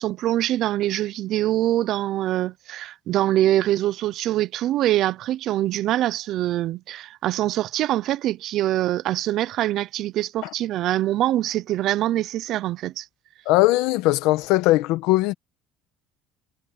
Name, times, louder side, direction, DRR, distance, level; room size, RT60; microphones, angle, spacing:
voice 1, 0.0-13.1, right 14 dB, 55° right, 0.7 m, -24 dB
voice 2, 13.4-15.3, left 18 dB, 80° left, 1.5 m, -19 dB
cardioid pair, 135°, 0 cm